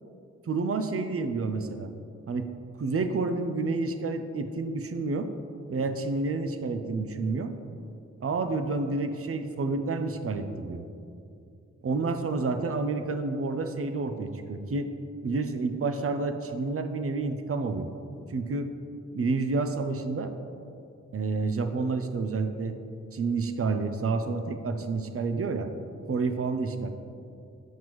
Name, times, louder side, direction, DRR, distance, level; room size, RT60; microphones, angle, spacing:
voice 1, 0.5-1.9 2.3-2.5 2.8-5.3 5.7-7.5 8.2-10.8 11.8-14.9 15.2-17.9 18.3-18.7 19.1-20.3 21.1-22.8 23.1-25.7 26.1-26.9, right 3 dB, 45° right, 8 dB, 0.6 m, -29 dB
7.3 x 5.8 x 3.1 m, 2.5 s
cardioid pair, 45°, 31 cm